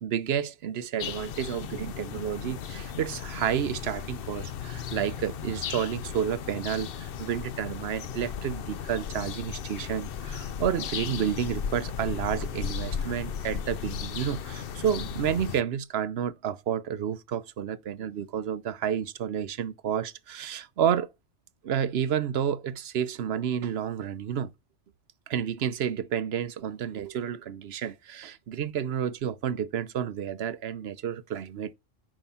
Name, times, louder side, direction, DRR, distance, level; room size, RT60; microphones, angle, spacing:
voice 1, 0.0-21.1 21.6-24.5 25.3-31.7, right 9 dB, 60° right, 0.9 m, -30 dB
sound 1, 1.0-15.6, left 8 dB, 55° left, 0.7 m, -36 dB
9.0 x 5.7 x 5.6 m
omnidirectional pair, 1.3 m